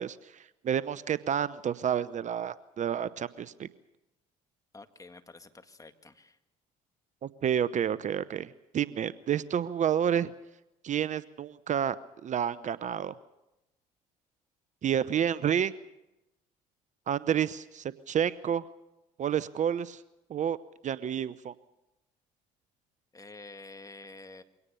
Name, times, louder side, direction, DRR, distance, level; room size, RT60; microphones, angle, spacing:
voice 1, 0.0-3.7 7.2-8.5 8.7-10.3 10.8-12.0 12.2-13.1 14.8-15.7 17.1-18.6 19.2-20.0 20.3-20.6 20.8-21.5, right 9 dB, 45° right, 17 dB, 0.8 m, -29 dB
voice 2, 4.7-6.4 23.1-24.4, left 3 dB, 20° left, 8 dB, 1.9 m, -49 dB
23.5 x 18.0 x 6.9 m, 0.93 s
hypercardioid pair, 65°, 17 cm